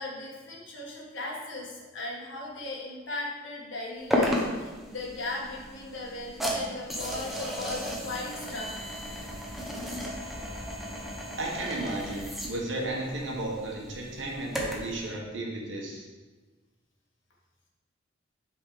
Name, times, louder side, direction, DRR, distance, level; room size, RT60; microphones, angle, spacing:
voice 1, 0.0-8.7, left 2 dB, 75° left, -2 dB, 1.5 m, -38 dB
sound 1, 4.1-15.0, equal, ahead, 0.8 m, -34 dB
voice 2, 11.4-16.0, right 2 dB, 75° right, -1 dB, 1.3 m, -34 dB
6.0 x 3.9 x 4.9 m, 1.3 s
head